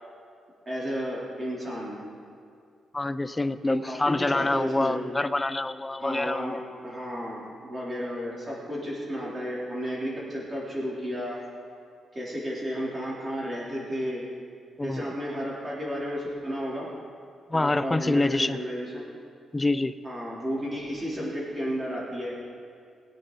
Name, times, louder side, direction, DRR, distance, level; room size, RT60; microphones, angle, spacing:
voice 1, 0.7-2.0 3.6-5.0 6.0-6.6 6.8-11.4 12.1-14.2 14.8-16.9 17.5-19.1 20.0-22.3, equal, 20° right, -6 dB, 3.4 m, -32 dB
voice 2, 2.9-6.6 14.8-15.1 17.5-18.6 19.5-19.9, left 2 dB, 15° left, 13 dB, 0.3 m, -26 dB
21.0 x 9.0 x 3.9 m, 2.3 s
wide cardioid pair, 155°, 0 cm